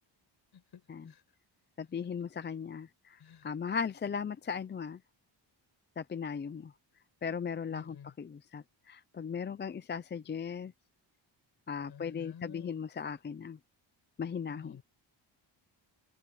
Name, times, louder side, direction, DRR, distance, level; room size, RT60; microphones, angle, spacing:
voice 1, 0.5-1.2 2.2-2.3 3.2-3.5 7.7-8.2 11.9-12.8 14.5-14.8, left 8 dB, 55° left, 7.5 m, -51 dB
voice 2, 1.8-5.0 6.0-6.7 7.2-10.7 11.7-13.6 14.2-14.8, left 6 dB, 25° left, 0.5 m, -37 dB
wide cardioid pair, 170°, 46 cm